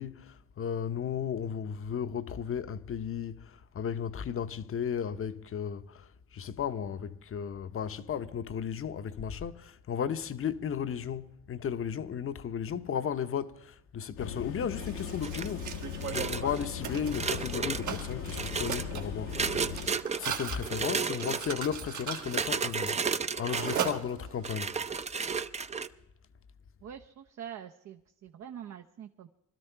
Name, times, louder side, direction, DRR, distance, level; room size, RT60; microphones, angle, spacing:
voice 1, 0.0-15.7 16.1-19.6 20.2-24.8, left 8 dB, 45° left, 0.9 m, -35 dB
sound 1, 14.2-19.9, left 7 dB, 85° left, 1.3 m, -39 dB
Mechanisms, 14.8-24.6, right 7 dB, 75° right, 2.0 m, -39 dB
sound 2, 15.2-15.6 16.0-16.7 17.1-17.8 18.3-18.9 19.3-20.2 20.6-21.7 22.2-23.9 24.4-25.9, right 5 dB, 20° right, 0.6 m, -33 dB
voice 2, 26.8-29.3, right 9 dB, 60° right, 0.8 m, -45 dB
21.0 x 12.5 x 4.5 m
cardioid pair, 90°, 30 cm